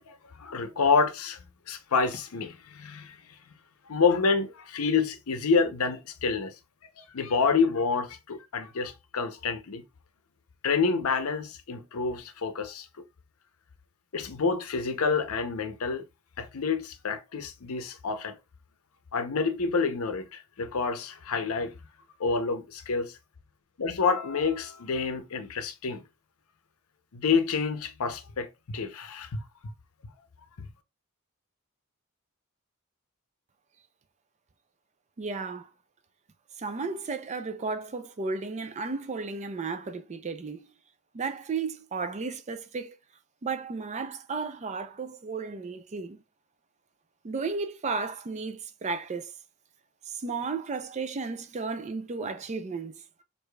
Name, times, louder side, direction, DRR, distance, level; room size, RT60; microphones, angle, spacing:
voice 1, 0.0-1.4 1.7-3.2 3.9-6.5 6.8-9.8 10.6-12.9 14.1-16.0 16.4-18.4 19.1-21.7 22.2-23.2 23.8-26.0 27.1-29.7 30.6-30.7, left 5 dB, 75° left, 0.6 m, -28 dB
voice 2, 35.2-35.7 36.6-40.7 41.1-43.0 43.4-46.2 47.2-49.3 50.1-53.2, right 4 dB, 30° right, 0.4 m, -34 dB
4.8 x 2.6 x 2.2 m
head